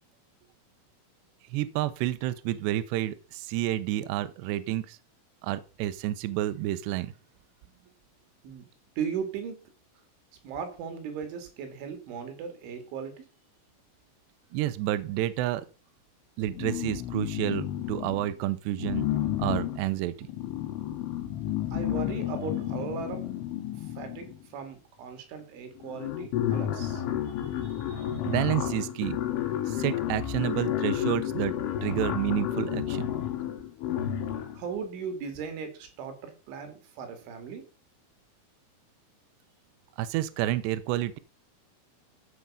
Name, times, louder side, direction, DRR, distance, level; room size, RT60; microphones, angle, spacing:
voice 1, 1.5-5.0 5.4-7.1 14.5-15.7 16.4-19.0 19.4-20.3 28.3-29.2 29.7-31.5 31.8-33.0 40.0-41.2, right 14 dB, 85° right, 2.4 m, -29 dB
voice 2, 9.0-9.6 10.4-13.2 21.7-23.3 23.6-28.3 34.5-37.7, right 6 dB, 65° right, 4.7 m, -38 dB
sound 1, 16.5-18.3 18.8-24.5 25.4-25.5 25.8-34.6, left 11 dB, 75° left, 4.1 m, -31 dB
13.5 x 7.2 x 5.6 m
omnidirectional pair, 6.0 m